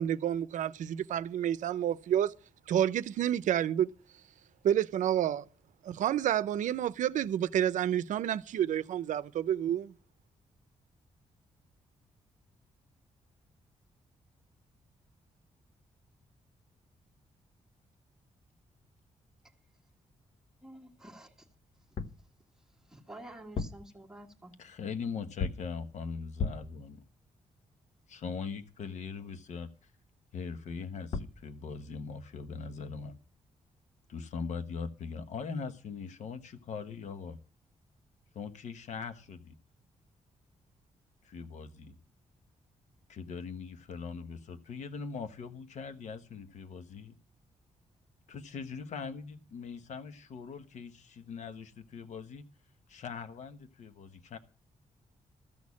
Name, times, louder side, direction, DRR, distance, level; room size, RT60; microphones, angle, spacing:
voice 1, 0.0-2.3 2.7-3.9 4.6-5.5 5.8-9.9, right 10 dB, 85° right, 0.6 m, -29 dB
voice 2, 20.6-21.3 22.9-24.5, right 1 dB, 5° right, 1.6 m, -49 dB
sound 1, 21.8-22.3 23.4-23.9 25.4-25.8 26.4-26.8 30.8-30.9 31.1-31.5, left 5 dB, 50° left, 0.9 m, -35 dB
voice 3, 24.6-27.0 28.1-29.9 30.3-33.2 34.1-37.4 38.3-39.5 41.2-41.9 43.1-47.1 48.3-52.5 52.9-54.4, left 5 dB, 70° left, 1.2 m, -41 dB
14.5 x 6.4 x 8.4 m
wide cardioid pair, 140°, 13 cm